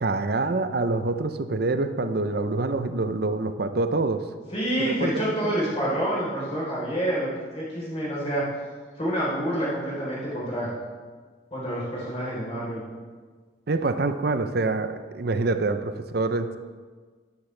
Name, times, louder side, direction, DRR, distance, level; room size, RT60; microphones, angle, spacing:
voice 1, 0.0-4.2 4.8-5.5 13.7-16.6, right 3 dB, 55° right, 10 dB, 0.6 m, -26 dB
voice 2, 4.5-8.4 9.0-10.7 11.5-12.8, right 1 dB, 30° left, -7 dB, 3.8 m, -28 dB
13.0 x 12.0 x 3.3 m, 1.5 s
head